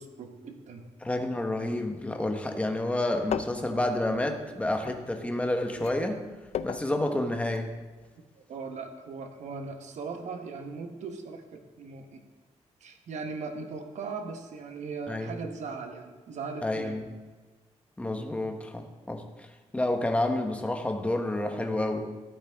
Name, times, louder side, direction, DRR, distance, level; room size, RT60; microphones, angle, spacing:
voice 1, 0.0-0.9 8.2-12.2 12.8-17.0, right 4 dB, 80° right, 5 dB, 1.3 m, -39 dB
voice 2, 1.0-6.2 6.6-7.7 15.1-15.4 16.6-17.0 18.0-19.5 19.7-22.1, left 1 dB, 10° left, 4 dB, 1.3 m, -29 dB
sound 1, 3.2-5.5 5.7-7.7 8.0-8.1, left 9 dB, 70° left, 0.4 m, -37 dB
13.5 x 11.0 x 3.6 m, 1.3 s
cardioid pair, 115°, 12 cm